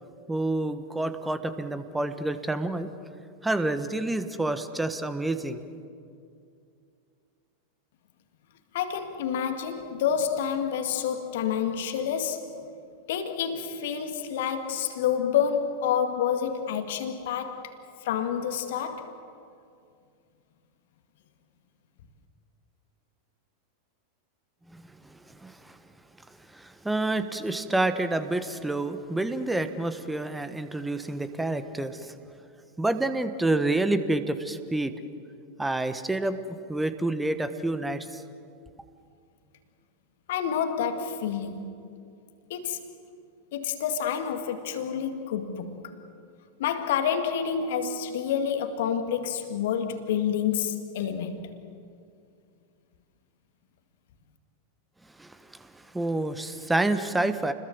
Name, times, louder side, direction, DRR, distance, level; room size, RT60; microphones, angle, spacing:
voice 1, 0.3-2.9 3.4-5.6 24.7-24.8 25.1-25.8 26.5-32.1 32.8-34.9 35.6-36.4 36.7-38.2 55.2-55.7 55.9-57.5, right 2 dB, 5° right, 1.4 m, -28 dB
voice 2, 8.7-12.4 13.1-17.7 18.0-19.1 40.3-41.7 42.5-42.8 43.5-45.9 46.6-51.5, left 8 dB, 55° left, 2.0 m, -28 dB
30.0 x 21.5 x 7.3 m
figure-of-eight pair, 90°, 0 cm